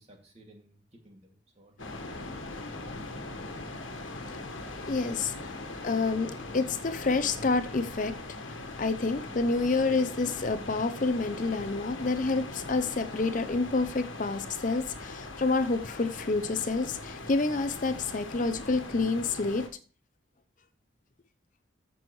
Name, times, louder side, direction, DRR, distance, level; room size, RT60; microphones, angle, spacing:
voice 1, 0.0-2.6, right 1 dB, 35° right, 1 dB, 2.5 m, -57 dB
sound 1, 1.8-19.7, left 2 dB, 85° left, 1.4 m, -41 dB
voice 2, 4.8-5.5 5.8-19.6, left 3 dB, 40° left, 10 dB, 0.6 m, -28 dB
14.0 x 6.2 x 3.1 m, 0.38 s
head